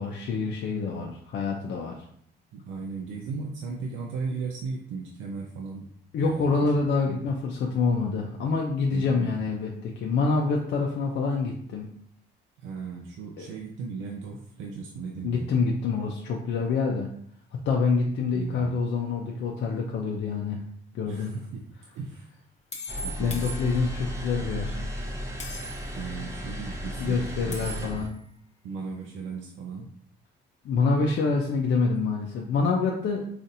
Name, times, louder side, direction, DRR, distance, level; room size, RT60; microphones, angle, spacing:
voice 1, 0.0-2.0 6.1-11.9 13.4-13.6 15.2-17.1 17.5-20.6 20.9-21.3 23.2-24.8 27.0-28.1 30.6-33.2, left 4 dB, 65° left, 0 dB, 0.5 m, -26 dB
voice 2, 2.5-5.9 6.2-6.7 7.1-7.2 8.9-9.4 12.6-15.5 18.3-18.7 21.0-21.6 21.9-22.3 23.0-23.4 25.9-27.9 28.6-29.9, right 4 dB, 85° right, 1 dB, 0.5 m, -36 dB
sound 1, 21.2-21.4 22.7-24.1 25.4-26.0 27.5-28.2, equal, 35° left, 0.8 m, -39 dB
sound 2, 22.9-28.1, equal, 15° right, 0.7 m, -35 dB
4.0 x 2.5 x 2.6 m, 0.64 s
cardioid pair, 90°, 20 cm